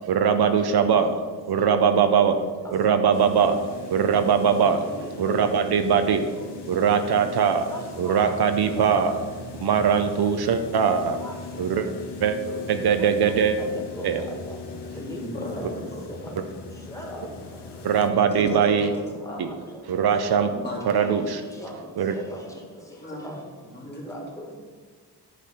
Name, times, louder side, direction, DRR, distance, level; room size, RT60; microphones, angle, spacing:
voice 1, 0.1-1.2 1.5-2.4 2.7-3.6 3.9-4.9 5.2-6.3 6.7-7.7 8.0-9.2 9.6-11.2 11.6-11.9 12.2-12.4 12.7-13.6 14.0-14.2 17.8-18.9 19.4-19.5 19.9-20.5 20.8-21.4 22.0-22.2, right 7 dB, 65° right, 8 dB, 0.7 m, -21 dB
voice 2, 2.6-3.2 3.5-3.6 4.9-5.7 7.7-8.2 8.6-9.1 11.2-11.3 11.7-11.8 12.5-12.7 13.0-13.1 13.6-14.1 14.5-14.6 15.0-15.7 16.2-16.3 16.9-17.3 18.3-18.6 19.3-19.4 21.6-21.7 22.3-22.4 23.2-23.4 23.8-24.5, equal, 10° left, -1 dB, 1.8 m, -38 dB
sound 1, 3.1-18.1, left 4 dB, 75° left, 1.3 m, -40 dB
voice 3, 15.2-16.3 18.0-19.4 20.5-21.1 21.8-21.9 22.7-23.3 23.6-24.2, left 1 dB, 25° left, -2 dB, 1.9 m, -36 dB
10.5 x 4.2 x 5.7 m, 1.5 s
cardioid pair, 115°, 41 cm